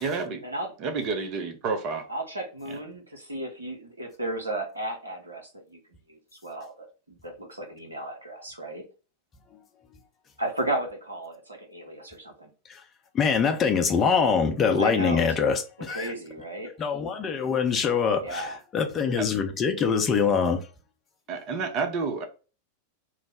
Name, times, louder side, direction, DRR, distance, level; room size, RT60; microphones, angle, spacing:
voice 1, 0.0-0.4 0.8-2.1 2.7-2.8 19.2-19.3 21.3-22.2, right 4 dB, 40° right, 0.7 m, -29 dB
voice 2, 2.1-5.8 6.1-8.8 10.4-12.5 14.8-15.6 15.9-16.7 18.2-18.6, right 1 dB, 80° right, 0.8 m, -34 dB
voice 3, 13.1-16.1 16.8-20.6, left 6 dB, 25° left, 0.6 m, -24 dB
3.2 x 2.1 x 3.6 m
figure-of-eight pair, 90°, 0 cm